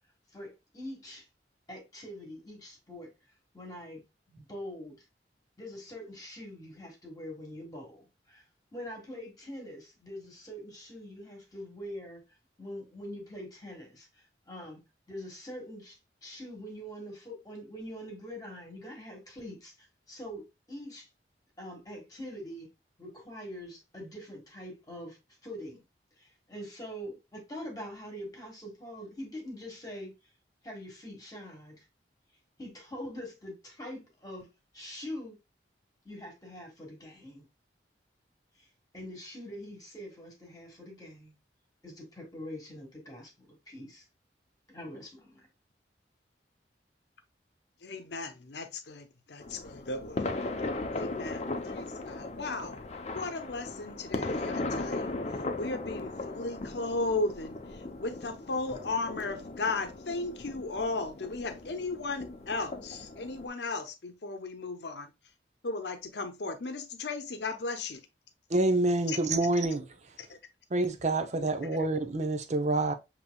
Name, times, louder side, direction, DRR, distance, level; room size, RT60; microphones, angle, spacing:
voice 1, 0.3-1.3 1.7-3.1 3.5-5.0 5.6-8.4 8.7-12.2 12.6-14.1 14.5-14.8 15.1-21.1 21.6-22.7 23.0-25.8 26.2-30.1 30.6-31.9 32.6-34.5 34.7-35.4 36.0-37.5 38.6-38.7 38.9-41.4 41.8-44.0 44.7-45.4, equal, 20° left, 1.5 m, -44 dB
voice 2, 47.8-50.5 50.9-52.8 53.1-65.1 65.6-68.0 69.1-69.2 70.2-70.4, left 3 dB, 75° left, 0.8 m, -36 dB
sound 1, 49.4-63.5, left 2 dB, 40° left, 0.6 m, -37 dB
voice 3, 68.5-69.8 70.7-72.9, right 2 dB, 40° right, 0.6 m, -27 dB
7.0 x 2.9 x 2.2 m
head